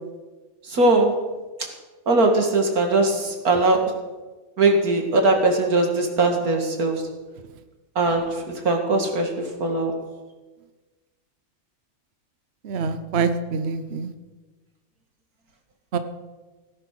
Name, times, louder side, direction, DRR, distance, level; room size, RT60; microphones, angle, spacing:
voice 1, 0.7-1.1 2.1-3.8 4.6-7.0 8.0-9.9, right 2 dB, 85° right, 3 dB, 2.7 m, -20 dB
voice 2, 12.7-14.1 15.9-16.0, right 5 dB, 50° right, 10 dB, 1.0 m, -25 dB
17.0 x 11.0 x 6.1 m, 1.2 s
omnidirectional pair, 1.5 m